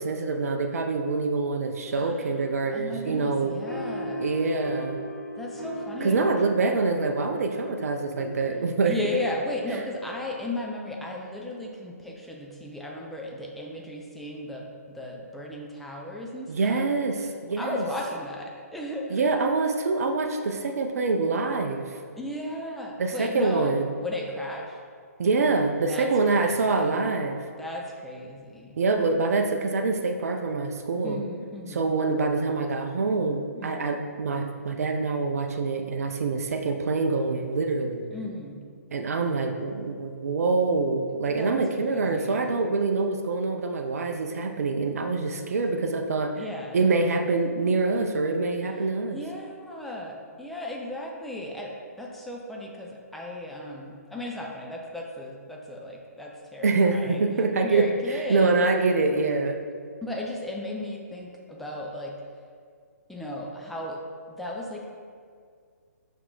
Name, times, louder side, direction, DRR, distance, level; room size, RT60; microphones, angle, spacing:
voice 1, 0.0-3.5 4.2-5.0 6.0-9.0 16.5-17.8 19.1-22.0 23.0-23.9 25.2-27.4 28.8-31.2 31.7-38.0 38.9-46.3 46.7-49.2 56.6-57.8 58.3-59.6, right 3 dB, 60° right, 5 dB, 0.5 m, -25 dB
voice 2, 1.9-2.4 2.7-4.3 5.4-6.2 8.8-16.9 17.5-19.3 22.2-24.8 25.9-27.0 27.6-28.8 31.0-31.9 33.5-34.0 38.1-38.6 41.4-41.5 41.8-42.5 46.4-46.8 49.1-57.3 57.6-58.6 60.0-62.1 63.1-64.0 64.3-64.9, left 1 dB, ahead, -2 dB, 0.6 m, -35 dB
sound 1, 3.7-10.5, equal, 80° left, 1.0 m, -38 dB
5.5 x 4.6 x 3.9 m, 2.1 s
figure-of-eight pair, 130°, 9 cm